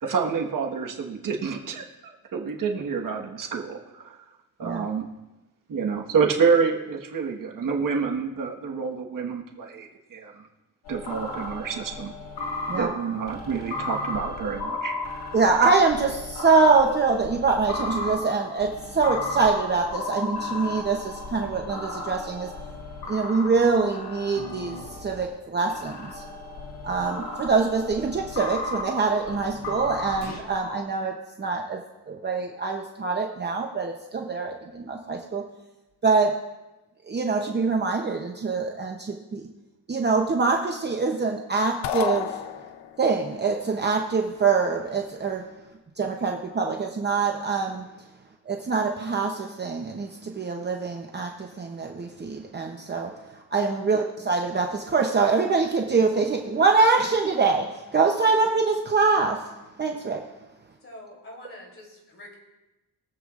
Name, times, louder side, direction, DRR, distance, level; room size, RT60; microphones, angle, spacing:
voice 1, 0.0-4.2 4.6-5.1 5.7-10.3 10.9-12.1 12.7-14.9, right 5 dB, 55° right, 1 dB, 1.5 m, -28 dB
sound 1, 10.9-25.3 25.7-30.8, left 2 dB, 70° left, 2.6 m, -35 dB
voice 2, 15.3-22.5 23.1-26.2 26.8-31.8 32.1-35.4 36.0-36.3 37.0-39.5 39.9-42.4 43.0-45.5 46.0-47.8 48.5-59.5 59.8-60.2, right 4 dB, 25° right, 2 dB, 0.8 m, -24 dB
sound 2, 41.8-43.1, left 9 dB, 90° left, 0.7 m, -30 dB
voice 3, 60.8-62.4, left 1 dB, 35° left, -1 dB, 3.3 m, -45 dB
23.0 x 7.9 x 2.5 m, 1.0 s
cardioid pair, 140°, 38 cm